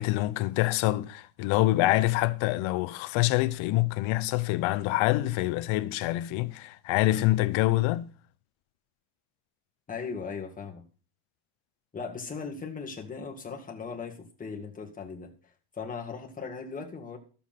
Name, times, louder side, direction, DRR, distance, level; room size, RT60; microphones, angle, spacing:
voice 1, 0.0-8.1, left 17 dB, 70° left, 0.9 m, -26 dB
voice 2, 9.9-10.8 11.9-15.3 15.7-17.2, left 5 dB, 15° left, 2.0 m, -38 dB
13.0 x 7.2 x 5.8 m
cardioid pair, 155°, 49 cm